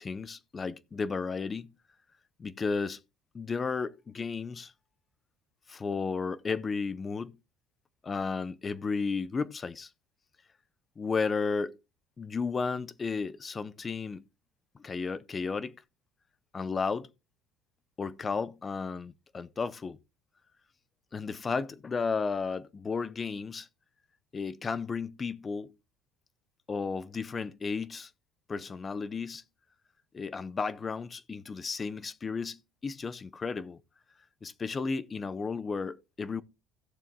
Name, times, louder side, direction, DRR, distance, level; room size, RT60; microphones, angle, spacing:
voice 1, 0.0-1.7 2.4-3.0 3.3-4.7 5.7-7.4 8.0-9.9 11.0-11.8 12.2-14.2 14.8-15.8 16.5-17.1 18.0-20.0 21.1-23.7 24.3-25.7 26.7-28.1 28.5-29.4 30.1-33.8 34.4-36.4, left 4 dB, 25° left, 0.6 m, -33 dB
16.5 x 7.0 x 2.2 m
cardioid pair, 125°, 0 cm